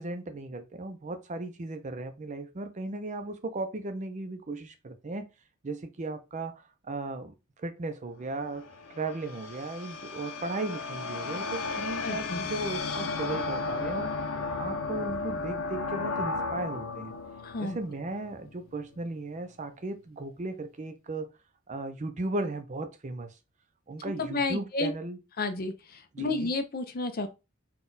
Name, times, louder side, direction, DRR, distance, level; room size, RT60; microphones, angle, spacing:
voice 1, 0.0-5.3 5.6-14.1 14.6-17.1 17.6-21.3 21.7-23.3 23.9-25.2 26.1-26.5, right 2 dB, 35° right, 0.5 m, -36 dB
sound 1, 8.3-18.6, left 3 dB, 80° left, 0.7 m, -34 dB
voice 2, 12.0-12.4 17.4-17.8 24.2-24.9 25.4-27.3, left 3 dB, 45° left, 0.6 m, -31 dB
4.1 x 2.3 x 3.8 m
head